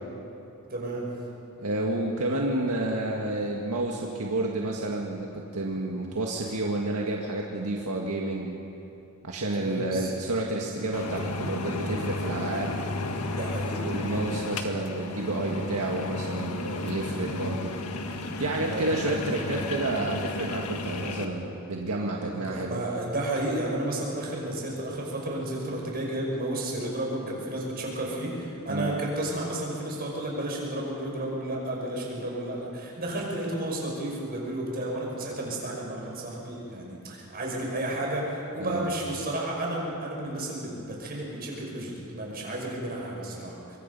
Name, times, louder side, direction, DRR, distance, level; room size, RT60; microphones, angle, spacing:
voice 1, 0.7-1.1 9.6-10.1 13.3-13.9 18.6-18.9 22.3-43.8, right 1 dB, 45° right, -2 dB, 5.9 m, -32 dB
voice 2, 1.6-8.6 9.2-12.8 13.8-17.8 18.4-22.8 28.7-29.0 38.6-38.9, right 2 dB, 80° right, -1 dB, 1.8 m, -30 dB
sound 1, 10.9-21.2, left 2 dB, 80° left, 1.6 m, -33 dB
25.5 x 23.0 x 5.5 m, 2.8 s
head